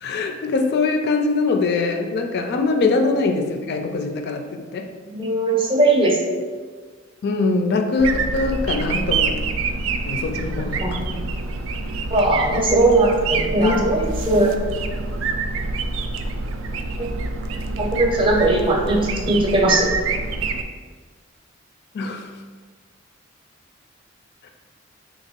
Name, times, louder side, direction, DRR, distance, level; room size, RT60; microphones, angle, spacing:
voice 1, 0.0-4.9 7.2-9.3 10.0-11.0 13.6-13.9 21.9-22.3, left 3 dB, 55° left, 5 dB, 0.4 m, -22 dB
voice 2, 5.0-6.4 10.6-11.3 12.1-14.5 17.0-17.1 17.8-19.9, right 2 dB, 25° right, 0 dB, 0.6 m, -19 dB
sound 1, 8.0-20.6, right 3 dB, 80° right, 0.3 m, -26 dB
2.9 x 2.9 x 4.4 m, 1.5 s
head